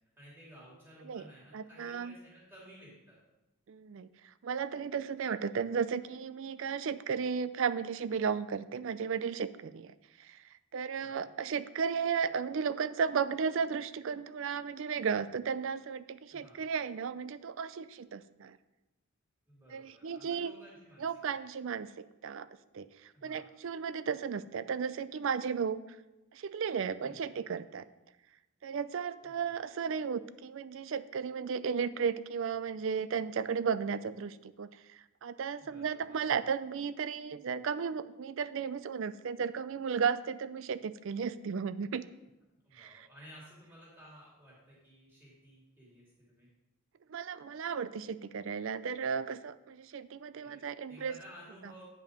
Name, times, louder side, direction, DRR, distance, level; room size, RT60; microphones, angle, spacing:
voice 1, 0.2-3.2 11.0-11.3 16.3-16.6 19.5-21.1 21.3-21.5 23.1-23.5 27.0-27.3 29.2-29.6 35.6-36.2 42.6-46.5 50.4-51.9, equal, 10° right, -6 dB, 2.8 m, -55 dB
voice 2, 1.5-2.2 3.7-9.9 10.2-10.4 10.7-18.6 19.7-20.5 21.0-22.5 22.7-25.8 26.3-27.9 28.6-34.8 35.2-42.1 42.7-43.1 47.1-51.1, right 6 dB, 60° right, 15 dB, 0.4 m, -34 dB
9.2 x 5.4 x 5.0 m, 1.0 s
head